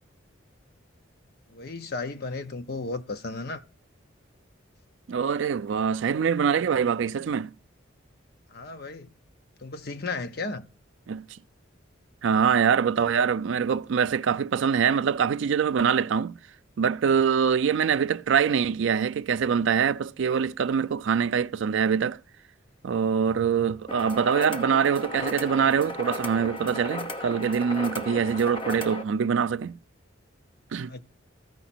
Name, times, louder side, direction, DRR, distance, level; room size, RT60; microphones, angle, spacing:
voice 1, 1.5-3.6 8.5-9.1 9.6-10.7 30.9-31.0, left 3 dB, 50° left, 0.8 m, -34 dB
voice 2, 5.1-7.5 11.1-11.3 12.2-16.4 16.8-22.2 22.8-29.8 30.7-31.0, right 7 dB, 65° right, 0.4 m, -24 dB
sound 1, 23.9-29.0, left 1 dB, 25° left, 1.0 m, -35 dB
14.0 x 5.0 x 4.3 m
head